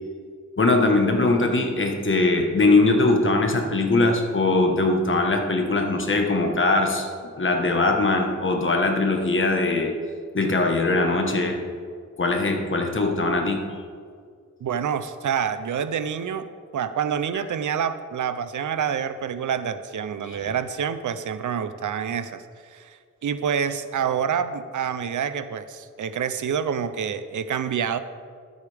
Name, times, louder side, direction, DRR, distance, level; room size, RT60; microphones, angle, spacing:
voice 1, 0.6-7.1 7.4-9.9 10.3-11.6 12.2-13.8, left 2 dB, 40° left, 3 dB, 1.3 m, -21 dB
voice 2, 14.6-16.5 16.7-22.4 22.7-28.0, right 7 dB, 85° right, 12 dB, 0.6 m, -27 dB
13.0 x 8.2 x 3.4 m, 2.1 s
wide cardioid pair, 115°, 30 cm